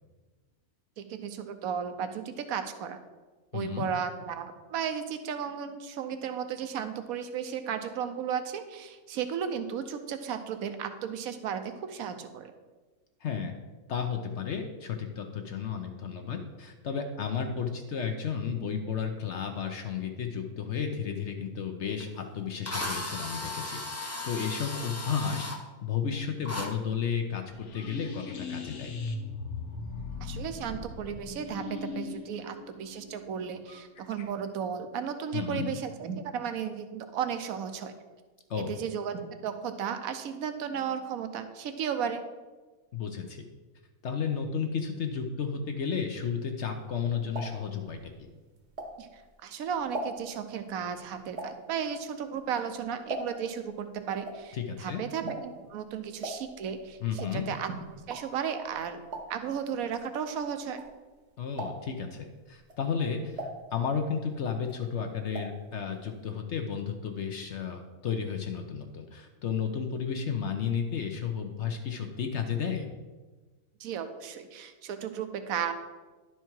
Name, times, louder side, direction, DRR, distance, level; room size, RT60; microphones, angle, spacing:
voice 1, 1.0-3.0 3.5-12.5 30.2-37.9 38.5-42.2 49.0-59.0 59.3-60.8 73.8-75.7, right 7 dB, 75° right, 8 dB, 1.1 m, -34 dB
voice 2, 3.5-3.9 13.2-13.5 13.9-25.5 25.8-28.9 35.3-35.7 38.5-38.8 42.9-43.5 44.0-48.3 54.5-55.0 57.0-57.5 61.4-72.9, left 7 dB, 60° left, 5 dB, 0.8 m, -33 dB
Drill, 22.0-22.1 22.7-25.6 26.5-26.7, left 2 dB, 20° left, 0.4 m, -36 dB
sound 1, 27.5-34.2, left 4 dB, 75° left, 1.3 m, -39 dB
sound 2, 46.8-49.3 49.7-53.6 53.9-61.2 61.5-62.1 62.6-64.3 64.6-65.7 65.9-66.0 66.3-66.4, right 1 dB, 50° right, 1.2 m, -41 dB
11.0 x 4.6 x 4.5 m, 1.3 s
omnidirectional pair, 1.6 m